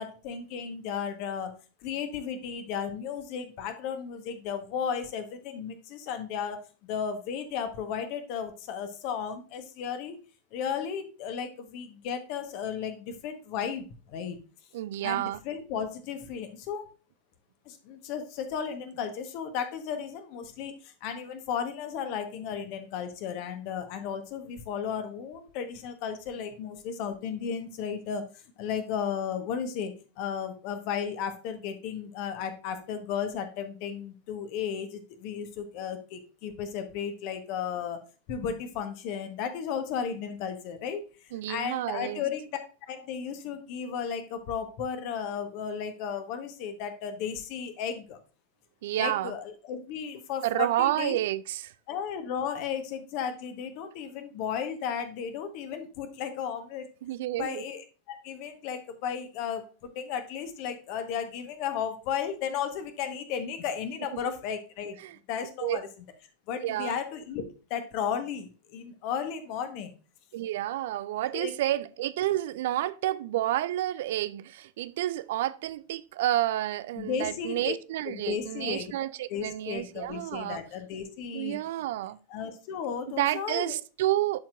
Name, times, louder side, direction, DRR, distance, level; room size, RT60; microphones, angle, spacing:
voice 1, 0.0-1.5 1.8-10.2 10.5-14.4 15.0-16.9 17.6-28.3 28.6-38.0 38.3-41.0 41.5-42.5 42.9-48.2 49.0-51.2 51.9-56.9 57.4-59.6 59.9-65.0 65.3-65.9 66.5-69.9 71.3-71.5 77.0-77.7 78.0-78.9 79.3-81.6 82.3-83.7, left 7 dB, 45° left, 1.2 m, -34 dB
voice 2, 14.7-15.4 41.3-42.2 48.8-49.3 50.4-51.7 57.0-57.6 64.1-64.2 65.0-65.2 65.6-65.8 66.6-67.0 70.3-80.6 81.3-82.2 83.1-84.4, right 14 dB, 55° right, 0.3 m, -30 dB
11.5 x 4.4 x 2.5 m
figure-of-eight pair, 90°, 0 cm